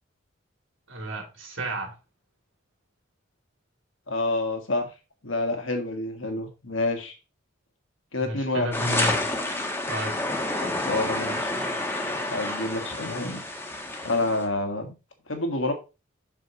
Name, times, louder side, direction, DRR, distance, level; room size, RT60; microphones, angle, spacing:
voice 1, 0.9-1.9 8.2-9.3 9.9-10.2, right 1 dB, 75° right, 2.7 m, -32 dB
voice 2, 4.1-4.9 5.2-7.1 8.1-8.7 10.6-11.5 12.3-13.4 14.0-14.9 15.3-15.7, left 2 dB, 80° left, 1.7 m, -28 dB
sound 1, 8.7-14.5, left 1 dB, 10° left, 1.1 m, -29 dB
7.5 x 6.2 x 3.0 m
head